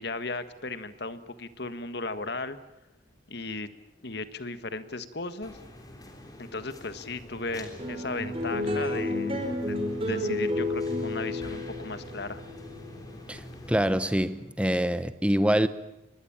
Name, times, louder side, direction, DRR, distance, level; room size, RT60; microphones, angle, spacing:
voice 1, 0.0-2.6 3.3-3.7 4.0-5.6 6.4-12.4, left 3 dB, 55° left, 1.5 m, -36 dB
sound 1, 5.4-14.3, left 1 dB, 20° left, 3.5 m, -46 dB
sound 2, 7.8-14.4, left 2 dB, 30° right, 4.7 m, -31 dB
voice 2, 13.7-15.7, equal, 5° right, 0.9 m, -25 dB
25.0 x 20.5 x 8.8 m
head